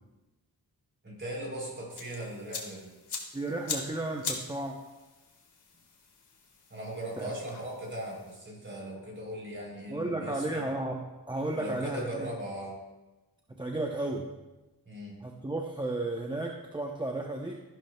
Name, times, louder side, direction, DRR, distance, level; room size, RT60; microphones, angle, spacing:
voice 1, 1.0-2.9 6.7-10.6 11.5-12.7 14.8-15.2, right 1 dB, 30° right, -2 dB, 3.4 m, -39 dB
sound 1, 1.9-8.4, left 4 dB, 85° left, 1.7 m, -42 dB
voice 2, 3.3-4.7 7.2-7.3 9.9-12.3 13.5-14.3 15.2-17.6, right 2 dB, 10° right, 0 dB, 0.6 m, -33 dB
13.5 x 11.5 x 2.2 m, 1.1 s
wide cardioid pair, 145°, 39 cm